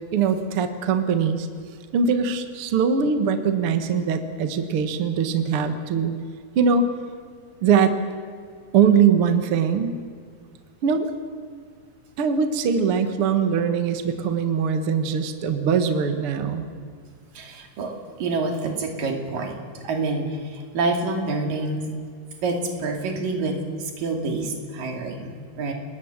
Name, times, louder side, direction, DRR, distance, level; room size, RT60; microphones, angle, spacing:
voice 1, 0.1-1.5 1.9-6.1 6.6-6.9 7.6-7.9 8.7-10.0 10.8-11.1 12.2-16.7, right 6 dB, 55° right, 7 dB, 1.7 m, -21 dB
voice 2, 17.3-21.9 22.4-25.7, right 3 dB, 70° right, 3 dB, 4.3 m, -27 dB
30.0 x 20.0 x 7.3 m, 2.1 s
omnidirectional pair, 4.1 m